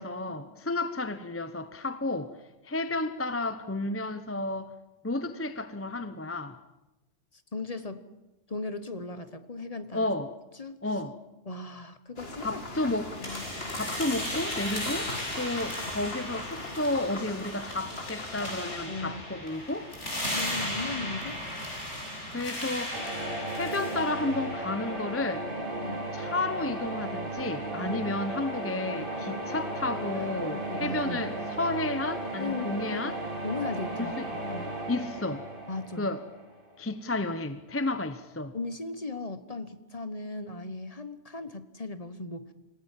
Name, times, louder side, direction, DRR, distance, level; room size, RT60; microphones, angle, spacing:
voice 1, 0.0-2.4 2.6-4.7 5.0-6.6 9.9-10.3 10.8-11.2 12.4-13.2 13.7-19.9 22.3-23.0 23.5-25.5 26.1-33.2 34.0-34.3 34.9-35.4 36.0-36.2 36.8-38.5, left 2 dB, 15° left, 11 dB, 0.7 m, -32 dB
voice 2, 7.5-8.1 8.5-10.1 10.6-10.8 11.5-12.6 13.2-13.5 18.9-19.2 20.3-21.4 25.8-26.1 27.9-28.0 30.2-30.3 30.5-31.2 32.4-33.0 33.4-34.7 35.7-36.1 38.5-42.5, left 3 dB, 35° left, 11 dB, 1.2 m, -37 dB
sound 1, 12.2-18.9, left 2 dB, 60° left, 2.9 m, -40 dB
sound 2, 13.2-25.1, left 1 dB, 85° left, 7.0 m, -36 dB
sound 3, 22.9-36.8, right 1 dB, 50° right, 3.1 m, -35 dB
27.5 x 17.5 x 7.5 m, 1.0 s
omnidirectional pair, 1.2 m